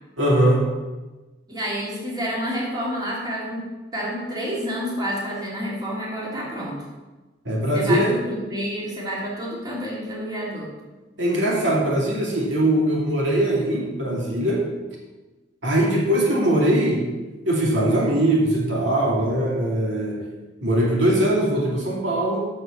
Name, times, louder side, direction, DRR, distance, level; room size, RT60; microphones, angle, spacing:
voice 1, 0.2-0.6 7.5-8.1 11.2-14.7 15.6-17.0 17.5-20.2 20.6-22.5, right 1 dB, 75° right, -3 dB, 2.4 m, -21 dB
voice 2, 1.5-3.6 3.9-6.8 7.7-10.7, equal, 20° right, -5 dB, 2.8 m, -29 dB
8.0 x 6.5 x 7.2 m, 1.2 s
head